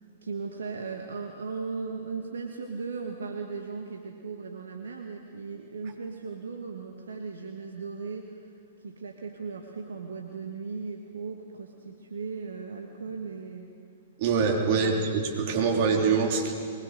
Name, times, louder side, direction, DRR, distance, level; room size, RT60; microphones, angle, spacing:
voice 1, 0.2-8.5 8.8-13.7 14.7-15.0, right 4 dB, 75° right, 2 dB, 1.8 m, -37 dB
voice 2, 14.2-16.5, right 5 dB, 50° right, 2 dB, 3.5 m, -24 dB
23.0 x 21.0 x 6.8 m, 2.2 s
figure-of-eight pair, 110°, 0 cm